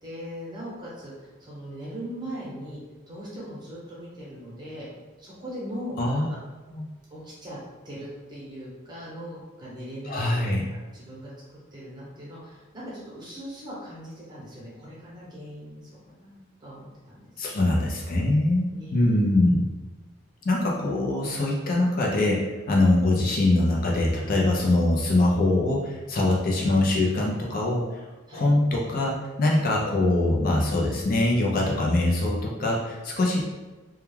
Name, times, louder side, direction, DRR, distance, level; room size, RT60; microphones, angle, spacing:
voice 1, 0.0-2.8 3.1-4.9 5.2-6.4 7.1-7.6 7.8-11.3 11.7-15.9 16.2-17.7 18.7-19.1 28.3-28.5 33.2-33.4, equal, 20° right, -7 dB, 0.8 m, -40 dB
voice 2, 10.0-10.6 17.4-19.6 20.4-28.1 28.3-33.4, left 2 dB, 45° left, -2 dB, 0.4 m, -23 dB
2.2 x 2.2 x 3.1 m, 1.2 s
head